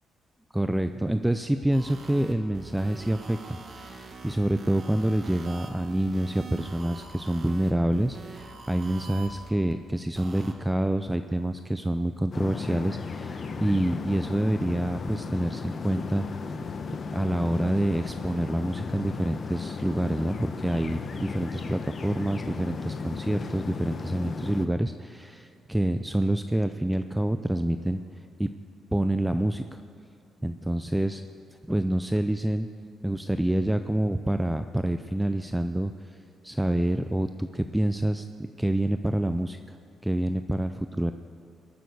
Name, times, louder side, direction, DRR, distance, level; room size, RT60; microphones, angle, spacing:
voice 1, 0.5-16.6 17.1-28.0 28.4-28.5 28.9-29.8 30.4-31.2 31.7-32.7 33.0-39.8 40.0-41.1, right 1 dB, 5° right, 9 dB, 0.4 m, -27 dB
sound 1, 1.7-9.7 10.1-10.5, right 3 dB, 45° right, 1.9 m, -44 dB
sound 2, 12.3-24.7, left 4 dB, 45° left, 0.9 m, -35 dB
20.5 x 6.9 x 8.1 m, 2.4 s
cardioid pair, 90°, 0 cm